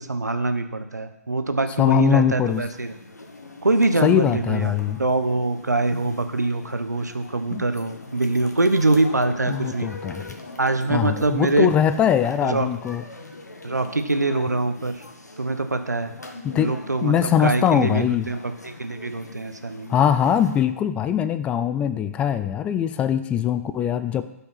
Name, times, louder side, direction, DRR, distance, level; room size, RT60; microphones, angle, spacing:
voice 1, 0.0-2.9 3.6-9.9 10.6-11.7 12.4-12.7 13.6-15.0 15.4-16.1 16.5-19.9, right 2 dB, 85° right, 9 dB, 1.0 m, -24 dB
voice 2, 1.8-2.6 4.0-5.0 7.5-7.6 9.5-10.3 10.9-13.0 16.4-16.7 17.0-18.3 19.9-24.2, left 9 dB, 15° left, 12 dB, 0.4 m, -21 dB
sound 1, 2.4-20.7, left 2 dB, 80° left, 1.4 m, -41 dB
12.5 x 5.6 x 5.8 m, 0.90 s
figure-of-eight pair, 130°, 9 cm